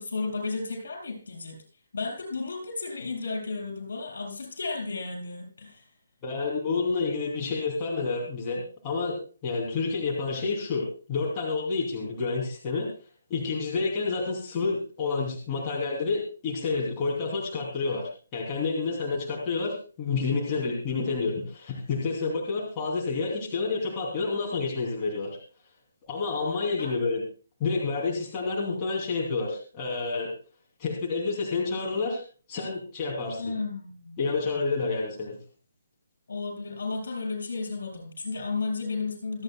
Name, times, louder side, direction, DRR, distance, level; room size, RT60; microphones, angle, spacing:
voice 1, 0.0-1.6 1.9-5.9 26.8-26.9 33.4-34.2 36.3-39.4, left 3 dB, 75° left, 1 dB, 7.6 m, -33 dB
voice 2, 6.2-9.1 9.4-12.9 13.3-25.4 26.1-27.2 27.6-30.3 30.8-32.2 32.5-33.5 34.2-35.4, left 4 dB, 20° left, -4 dB, 3.2 m, -29 dB
26.5 x 9.1 x 2.4 m, 0.37 s
hypercardioid pair, 170°, 0 cm